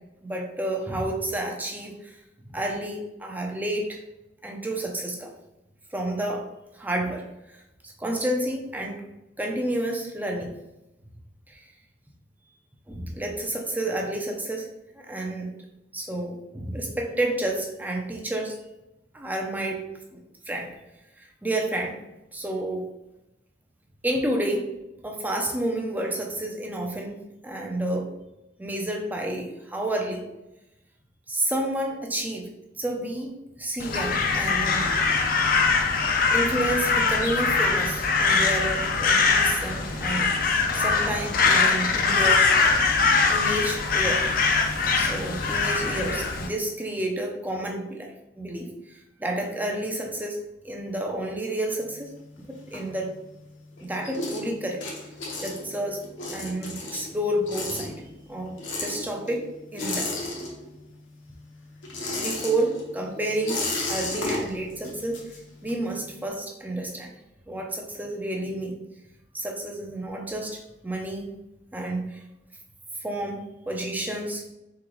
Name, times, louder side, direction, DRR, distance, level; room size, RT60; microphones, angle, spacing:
voice 1, 0.2-2.2 2.5-4.0 4.4-5.3 5.9-6.5 6.7-9.0 9.4-10.5 11.5-11.6 12.9-14.7 15.0-15.5 15.9-18.6 19.1-19.8 20.1-20.7 21.2-22.0 22.3-22.8 24.0-24.7 25.0-28.1 28.6-30.2 31.3-32.5 32.8-35.0 36.3-42.5 43.3-44.2 44.9-50.4 50.6-52.1 52.4-53.1 53.8-54.8 55.4-56.0 56.3-60.3 62.2-63.6 63.9-65.2 65.6-67.1 67.5-68.8 69.3-71.3 71.7-72.2 73.0-74.4, right 1 dB, 10° right, 1 dB, 0.5 m, -30 dB
Crow, 33.8-46.5, left 4 dB, 50° left, 0.5 m, -22 dB
sound 1, 51.8-53.4 53.7-61.0 61.2-65.9, left 2 dB, 80° left, 0.9 m, -34 dB
3.9 x 3.8 x 3.1 m, 0.93 s
head